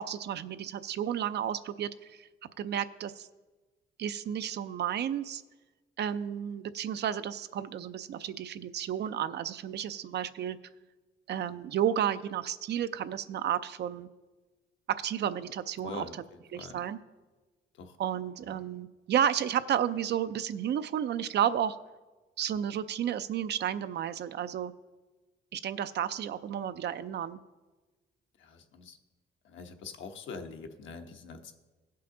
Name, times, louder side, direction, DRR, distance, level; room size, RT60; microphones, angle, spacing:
voice 1, 0.0-2.3 2.6-3.3 4.0-5.4 6.0-10.6 11.3-14.1 14.9-16.1 16.5-17.0 18.0-21.8 22.4-24.7 25.5-27.4, right 9 dB, 60° right, 13 dB, 0.5 m, -32 dB
voice 2, 15.8-16.8 17.7-18.0 18.4-18.6 28.4-29.0 29.4-31.5, left 4 dB, 75° left, 5 dB, 1.0 m, -44 dB
16.5 x 5.7 x 3.8 m, 1.2 s
cardioid pair, 90°, 20 cm